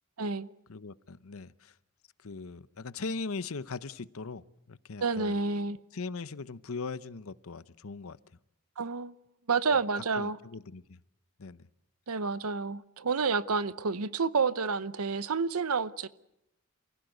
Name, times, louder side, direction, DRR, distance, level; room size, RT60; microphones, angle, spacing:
voice 1, 0.2-0.5 5.0-5.8 8.8-9.1 9.5-10.4 12.1-16.1, right 4 dB, 80° right, 0.8 m, -29 dB
voice 2, 0.7-1.8 2.2-5.4 5.9-8.2 10.1-11.0 11.4-11.7, left 4 dB, 70° left, 0.8 m, -40 dB
29.0 x 16.0 x 8.0 m
head